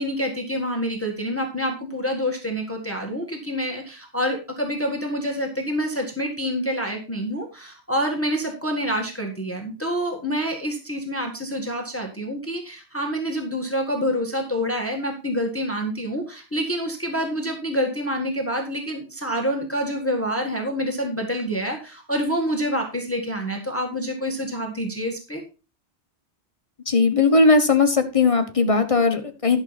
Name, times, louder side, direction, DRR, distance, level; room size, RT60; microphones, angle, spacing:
voice 1, 0.0-25.4, equal, 10° left, 2 dB, 1.6 m, -27 dB
voice 2, 26.9-29.6, left 3 dB, 30° left, 7 dB, 1.3 m, -18 dB
12.0 x 6.4 x 4.1 m, 0.31 s
omnidirectional pair, 1.2 m